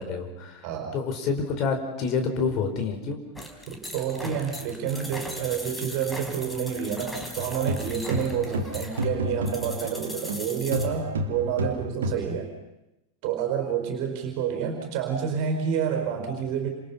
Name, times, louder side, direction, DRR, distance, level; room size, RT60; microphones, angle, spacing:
voice 1, 0.0-0.7 0.9-3.2, left 5 dB, 35° left, 5 dB, 4.9 m, -28 dB
voice 2, 0.6-0.9 3.7-12.5 13.2-16.7, right 8 dB, 45° right, 4 dB, 5.1 m, -29 dB
sound 1, 3.4-10.9, left 1 dB, 10° left, 3.9 m, -39 dB
sound 2, 7.4-10.4 10.7-12.3, right 1 dB, 65° right, 2.5 m, -30 dB
30.0 x 27.5 x 5.7 m, 0.93 s
figure-of-eight pair, 90°, 0 cm